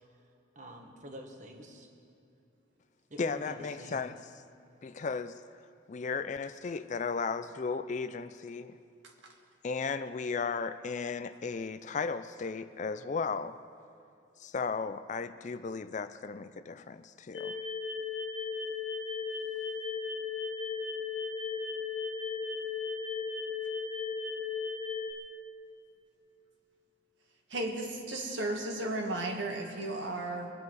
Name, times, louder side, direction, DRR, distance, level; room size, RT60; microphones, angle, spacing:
voice 1, 0.5-1.9 3.1-4.1, right 1 dB, 40° right, 1.5 m, -47 dB
voice 2, 3.2-4.2 4.8-5.6 5.9-8.8 9.6-13.6 14.4-17.6, left 5 dB, 40° left, 0.4 m, -35 dB
sound 1, 17.3-25.1, left 5 dB, 75° left, 1.2 m, -36 dB
voice 3, 27.5-30.5, right 2 dB, 65° right, 1.9 m, -34 dB
23.0 x 9.6 x 4.7 m
head